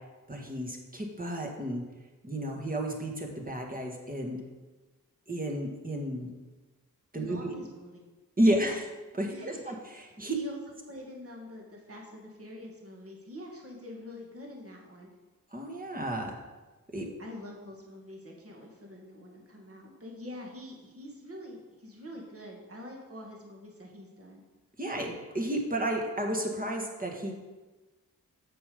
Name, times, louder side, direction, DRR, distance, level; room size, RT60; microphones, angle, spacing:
voice 1, 0.3-1.8 2.2-4.4 5.3-6.3 7.1-7.7 8.4-8.9 9.1-9.7 10.2-10.3 15.5-16.3 16.9-17.1 24.8-27.3, right 1 dB, 25° right, 1 dB, 1.7 m, -31 dB
voice 2, 7.1-8.0 8.6-8.8 9.2-9.8 10.0-15.1 17.2-24.4, left 1 dB, 40° right, 0 dB, 2.1 m, -46 dB
6.7 x 5.5 x 5.2 m, 1.2 s
cardioid pair, 45°, 36 cm